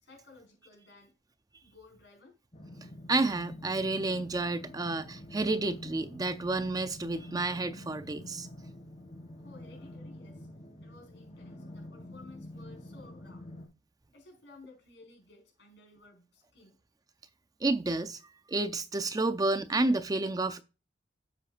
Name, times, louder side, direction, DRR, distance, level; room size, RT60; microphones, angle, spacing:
voice 1, 0.0-1.1 1.6-2.4 9.4-10.5 10.8-13.5 14.1-16.8, left 3 dB, 70° left, 5.0 m, -55 dB
sound 1, 2.5-13.7, left 1 dB, 35° left, 3.1 m, -47 dB
voice 2, 3.1-8.5 17.6-18.2 18.5-20.6, right 2 dB, 20° right, 0.5 m, -30 dB
10.0 x 7.9 x 2.5 m
head